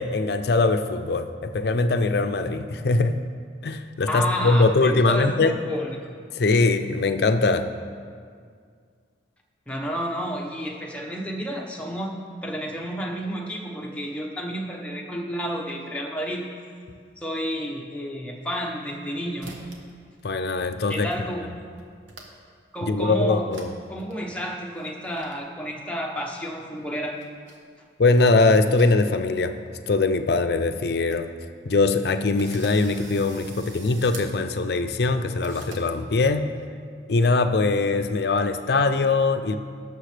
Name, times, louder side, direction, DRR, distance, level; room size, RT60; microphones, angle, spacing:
voice 1, 0.0-3.2 3.6-5.6 6.3-7.7 20.2-21.1 22.8-23.7 28.0-29.5 29.9-31.3 31.7-36.5 37.1-39.6, left 3 dB, 55° left, 9 dB, 0.5 m, -22 dB
voice 2, 4.1-6.0 9.7-16.4 17.2-19.5 20.9-21.5 22.7-23.5 23.9-27.2, equal, 5° left, -1 dB, 0.9 m, -31 dB
sound 1, 18.5-19.1 19.4-19.9 20.2-20.7 21.1-21.2 21.5-22.5 22.9-23.0 23.5-23.7 24.0-24.1 24.7-25.3 26.6-27.6 28.2-29.3 29.6-29.7 30.3-30.4 30.6-30.7 30.9-31.2 31.7-31.8 32.4-34.3 35.4-35.8, right 3 dB, 85° right, 1.3 m, -44 dB
18.0 x 6.7 x 3.3 m, 2.1 s
head